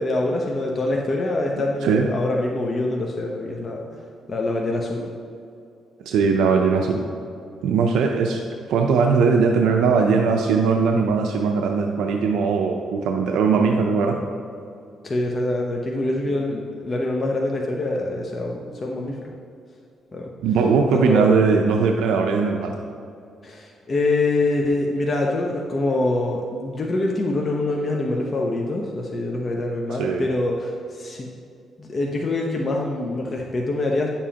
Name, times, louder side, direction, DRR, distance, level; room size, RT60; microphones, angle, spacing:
voice 1, 0.0-5.1 15.0-19.3 20.1-20.3 20.9-21.5 23.4-31.3 31.8-34.1, left 2 dB, 35° left, -1 dB, 0.8 m, -25 dB
voice 2, 6.1-7.0 7.6-8.4 8.7-14.2 20.4-22.7 30.0-30.2, right 5 dB, 85° right, 2 dB, 0.5 m, -19 dB
10.0 x 7.2 x 2.9 m, 2.5 s
cardioid pair, 90°, 0 cm